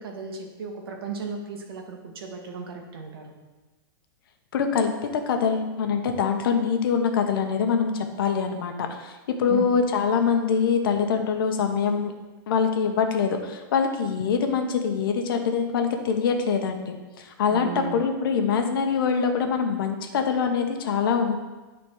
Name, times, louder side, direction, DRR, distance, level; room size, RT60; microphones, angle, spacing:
voice 1, 0.0-3.4 9.5-9.7 17.5-18.0, right 5 dB, 75° right, 2 dB, 1.7 m, -35 dB
voice 2, 4.5-12.1 12.5-21.4, left 6 dB, 65° left, 5 dB, 1.1 m, -24 dB
10.5 x 4.1 x 4.7 m, 1.2 s
supercardioid pair, 165°, 12 cm